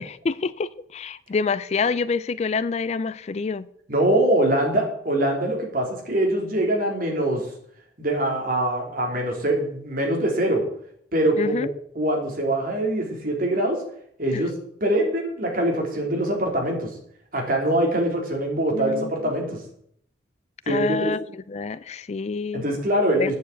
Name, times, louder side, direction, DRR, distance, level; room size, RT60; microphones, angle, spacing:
voice 1, 0.0-3.7 11.4-11.7 14.3-14.4 18.7-19.1 20.7-22.6 23.2-23.3, left 4 dB, 40° left, 0.4 m, -27 dB
voice 2, 3.9-7.5 8.0-10.6 11.1-11.7 11.9-13.8 14.2-14.5 14.8-16.9 17.3-19.6 20.7-21.1 22.5-23.3, right 1 dB, 55° right, 3.2 m, -23 dB
9.3 x 7.2 x 8.3 m
head